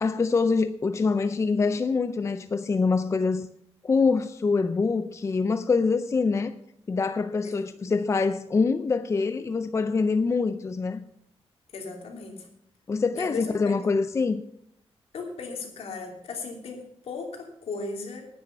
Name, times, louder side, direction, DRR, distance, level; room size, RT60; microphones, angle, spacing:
voice 1, 0.0-3.5 3.8-6.6 6.9-11.0 12.9-14.4, left 4 dB, 25° left, 0.5 m, -25 dB
voice 2, 7.4-7.9 11.7-12.5 13.2-13.9 15.1-18.3, left 3 dB, 70° left, 2.9 m, -37 dB
10.0 x 9.6 x 6.6 m
wide cardioid pair, 140°, 11 cm